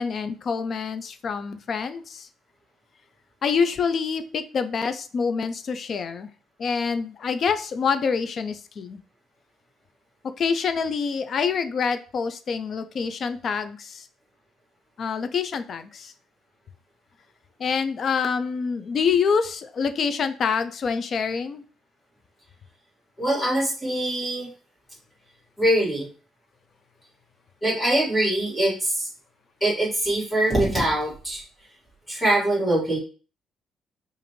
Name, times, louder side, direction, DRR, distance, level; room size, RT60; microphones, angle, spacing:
voice 1, 0.0-2.3 3.4-6.3 6.6-9.0 10.4-14.1 15.0-16.1 17.6-21.6, left 5 dB, 45° left, 10 dB, 0.4 m, -26 dB
voice 2, 23.2-24.5 25.6-26.1 27.6-29.1 29.6-31.4 32.1-33.0, right 1 dB, 10° left, -5 dB, 1.7 m, -23 dB
4.9 x 2.6 x 3.1 m, 0.37 s
cardioid pair, 135°, 0 cm